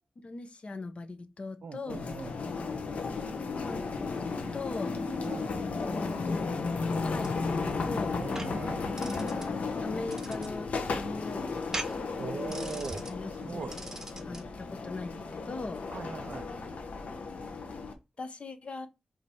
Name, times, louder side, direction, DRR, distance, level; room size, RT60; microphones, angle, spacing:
voice 1, 0.2-2.0 3.6-4.1 4.5-4.9 7.0-7.3 7.8-8.2 9.8-11.8 13.1-13.6 14.3-14.4 14.8-15.8 18.2-18.9, left 3 dB, 55° left, 1.2 m, -39 dB
voice 2, 1.6-2.4 5.2-5.6 8.2-8.9 12.2-13.1 13.4-13.8 15.9-16.5, right 5 dB, 75° right, 0.6 m, -40 dB
sound 1, 1.9-17.9, left 4 dB, 80° left, 1.3 m, -34 dB
sound 2, 7.2-14.5, right 1 dB, 20° right, 1.4 m, -43 dB
5.5 x 3.9 x 4.7 m
cardioid pair, 55°, 2 cm